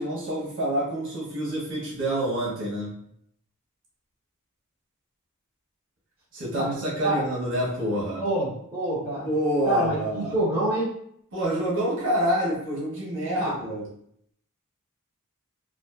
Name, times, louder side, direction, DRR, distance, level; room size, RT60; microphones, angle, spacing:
voice 1, 0.0-3.0 6.3-8.3 9.2-10.4 11.3-13.9, right 1 dB, 60° right, -5 dB, 0.8 m, -27 dB
voice 2, 8.2-9.3 9.6-10.9 13.4-13.5, right 1 dB, 10° right, -9 dB, 1.0 m, -26 dB
2.5 x 2.4 x 2.3 m, 0.69 s
head